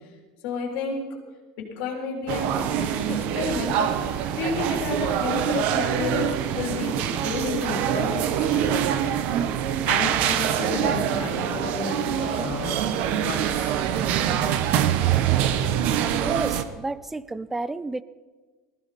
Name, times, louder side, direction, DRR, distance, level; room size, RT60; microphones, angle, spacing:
voice 1, 0.4-1.2 1.6-9.1 9.9-12.8 13.2-13.8, left 4 dB, 65° left, 0 dB, 3.8 m, -31 dB
sound 1, 2.3-16.6, right 10 dB, 55° right, 1.0 m, -24 dB
voice 2, 16.0-18.0, right 2 dB, 10° right, 17 dB, 0.5 m, -31 dB
20.0 x 15.0 x 4.3 m, 1.4 s
supercardioid pair, 135°, 3 cm